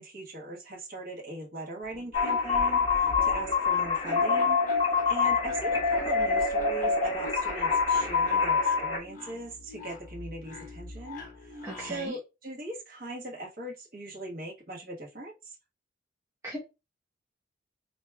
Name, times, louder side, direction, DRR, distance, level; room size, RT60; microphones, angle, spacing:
voice 1, 0.0-4.6 5.1-15.6, right 2 dB, 50° right, -3 dB, 1.3 m, -40 dB
sound 1, 1.8-12.1, left 2 dB, 45° left, 0.9 m, -44 dB
sound 2, 2.1-9.0, left 4 dB, 25° left, 1.3 m, -26 dB
voice 2, 11.6-12.2 16.4-16.6, right 1 dB, 15° right, -3 dB, 0.7 m, -37 dB
4.5 x 2.9 x 2.3 m, 0.26 s
head